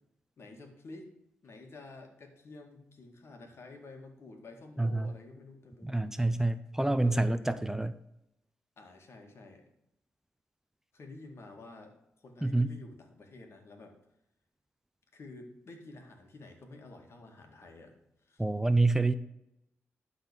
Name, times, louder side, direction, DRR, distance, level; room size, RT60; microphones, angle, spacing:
voice 1, 0.4-1.1 1.4-6.3 7.0-7.4 8.8-9.7 10.9-14.0 15.1-17.9 18.2-18.4, left 2 dB, 65° left, 3 dB, 2.1 m, -50 dB
voice 2, 4.8-5.1 5.8-7.9 12.4-12.7 18.4-19.1, right 2 dB, 10° right, 12 dB, 0.5 m, -27 dB
11.5 x 4.1 x 6.9 m, 0.85 s
cardioid pair, 70°, 5 cm